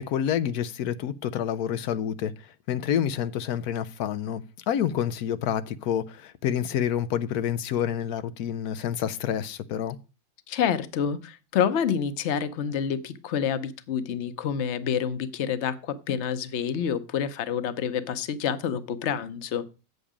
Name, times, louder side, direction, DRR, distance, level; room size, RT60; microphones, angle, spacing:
voice 1, 0.0-2.3 2.7-10.0, left 9 dB, 90° left, 1.2 m, -28 dB
voice 2, 10.5-19.6, left 8 dB, 55° left, 1.1 m, -28 dB
8.5 x 8.1 x 4.9 m
omnidirectional pair, 1.5 m